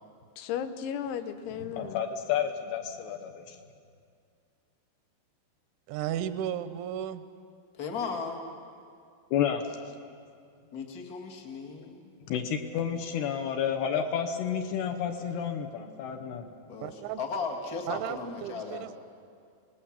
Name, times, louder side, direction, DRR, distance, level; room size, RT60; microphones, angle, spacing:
voice 1, 0.4-2.0, left 8 dB, 90° left, 9 dB, 3.4 m, -35 dB
voice 2, 1.8-3.6 9.3-9.6 12.3-16.4, left 8 dB, 70° left, 4 dB, 2.9 m, -30 dB
voice 3, 5.9-7.2 16.8-17.2 17.9-19.0, right 10 dB, 85° right, 11 dB, 3.1 m, -34 dB
voice 4, 7.8-8.4 10.7-12.1 16.7-16.9 17.2-18.8, left 4 dB, 50° left, 1 dB, 1.1 m, -36 dB
26.5 x 19.0 x 7.3 m, 2.3 s
omnidirectional pair, 5.3 m